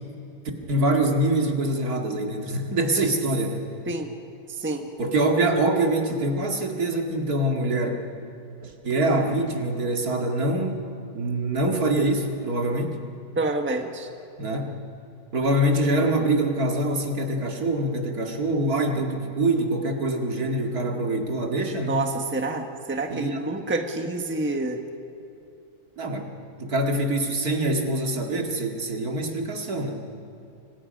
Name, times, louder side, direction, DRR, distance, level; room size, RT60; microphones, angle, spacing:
voice 1, 0.7-3.7 5.0-8.0 8.6-10.8 11.1-13.0 14.4-14.8 15.3-22.1 23.1-23.4 26.0-26.3 26.6-30.0, right 1 dB, 65° right, 2 dB, 2.7 m, -24 dB
voice 2, 4.6-4.9 13.3-14.1 21.9-24.8, right 2 dB, 10° right, 4 dB, 1.3 m, -28 dB
29.5 x 25.0 x 5.4 m, 2.8 s
omnidirectional pair, 1.7 m